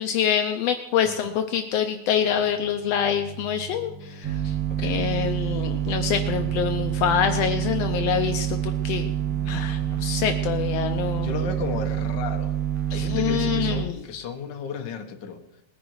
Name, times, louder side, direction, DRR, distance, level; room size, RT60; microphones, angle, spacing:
voice 1, 0.0-4.5 4.8-9.1 9.5-11.3 12.9-14.0, left 9 dB, 85° left, 6 dB, 1.4 m, -26 dB
voice 2, 1.0-1.4 4.7-5.1 11.2-12.6 12.9-15.4, left 5 dB, 65° left, 5 dB, 1.1 m, -34 dB
sound 1, 2.2-11.3, right 4 dB, 80° right, 5.3 m, -45 dB
sound 2, 4.2-13.8, right 11 dB, 65° right, 2.3 m, -27 dB
20.0 x 10.5 x 4.7 m, 0.86 s
omnidirectional pair, 3.8 m